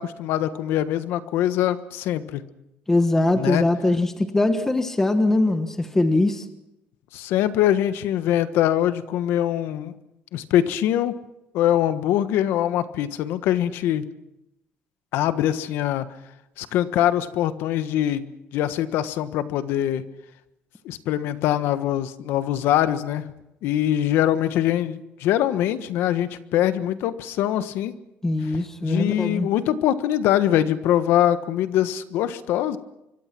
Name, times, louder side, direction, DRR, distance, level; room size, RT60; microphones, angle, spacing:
voice 1, 0.0-2.4 3.4-3.6 7.1-9.9 10.3-11.2 11.5-14.1 15.1-16.0 16.6-20.0 20.8-23.3 23.6-27.9 28.8-32.8, left 11 dB, 85° left, 12 dB, 1.4 m, -23 dB
voice 2, 2.9-6.4 28.2-29.5, left 2 dB, 10° left, 8 dB, 1.4 m, -21 dB
26.0 x 24.0 x 6.1 m, 0.88 s
cardioid pair, 155°, 4 cm